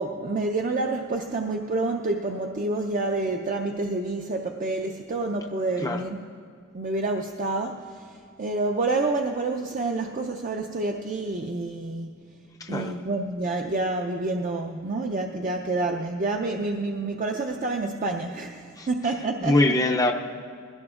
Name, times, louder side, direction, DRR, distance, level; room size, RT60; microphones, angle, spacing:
voice 1, 0.0-6.2 6.7-12.2 12.7-19.6, right 2 dB, 35° right, 3 dB, 0.5 m, -28 dB
voice 2, 12.6-12.9 18.8-18.9 19.4-20.1, left 2 dB, 15° left, 2 dB, 0.4 m, -23 dB
21.0 x 17.0 x 2.4 m, 2.1 s
head